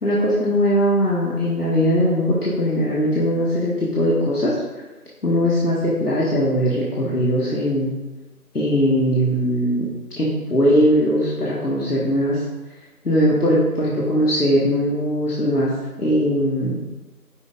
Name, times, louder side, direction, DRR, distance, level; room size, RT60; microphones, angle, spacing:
voice 1, 0.0-4.5 5.2-7.9 8.5-9.9 10.2-12.4 13.0-15.7 16.0-16.8, equal, 80° left, -7 dB, 2.1 m, -20 dB
9.5 x 5.6 x 2.7 m, 1.1 s
figure-of-eight pair, 180°, 46 cm